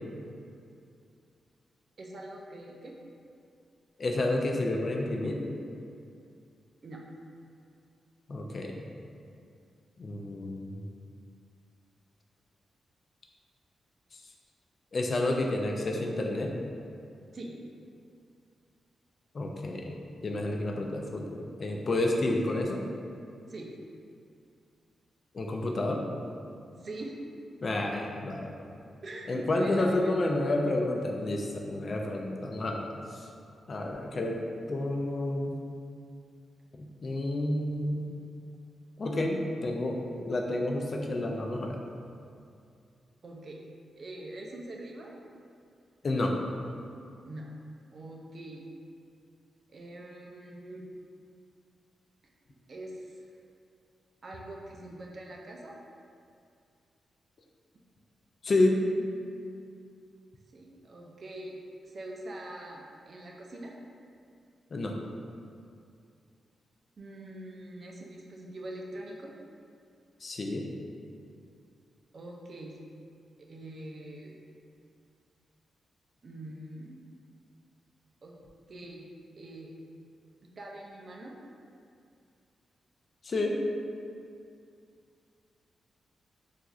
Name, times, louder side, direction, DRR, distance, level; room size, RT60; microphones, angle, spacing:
voice 1, 2.0-2.9 6.8-7.0 17.3-17.5 23.5-23.7 26.7-27.2 29.0-30.3 43.2-43.6 44.0-45.1 47.2-47.5 47.9-48.6 49.7-50.9 52.7-53.1 54.2-55.8 60.5-61.6 61.8-63.7 67.0-69.3 72.1-72.8 73.4-74.3 76.2-77.0 78.2-78.4 78.7-79.1 79.4-79.7 80.6-81.3, right 1 dB, 40° right, -1 dB, 0.4 m, -43 dB
voice 2, 4.0-5.4 8.3-8.7 10.0-10.8 14.9-16.5 19.3-19.9 20.2-22.8 25.3-26.0 27.6-28.5 29.3-33.2 33.7-34.4 34.7-35.6 36.8-38.1 39.0-41.8 46.0-46.3 58.4-59.1 64.7-64.9 70.2-70.7 83.2-83.6, left 2 dB, 40° left, 1 dB, 0.3 m, -30 dB
2.4 x 2.4 x 4.0 m, 2.4 s
wide cardioid pair, 155°, 0 cm